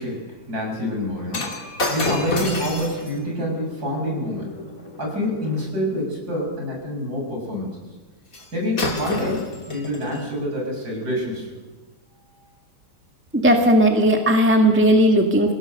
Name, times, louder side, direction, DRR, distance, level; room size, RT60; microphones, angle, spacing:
voice 1, 0.0-1.5 1.9-4.6 5.0-7.7 8.5-11.6, left 1 dB, 45° right, 0 dB, 7.2 m, -27 dB
Shatter, 1.3-5.7 8.3-8.5 8.8-10.3 11.0-11.2, left 2 dB, 40° left, 3.0 m, -30 dB
voice 2, 13.3-15.5, right 1 dB, 5° right, 3 dB, 1.4 m, -16 dB
26.5 x 17.0 x 6.7 m, 1.2 s
omnidirectional pair, 2.4 m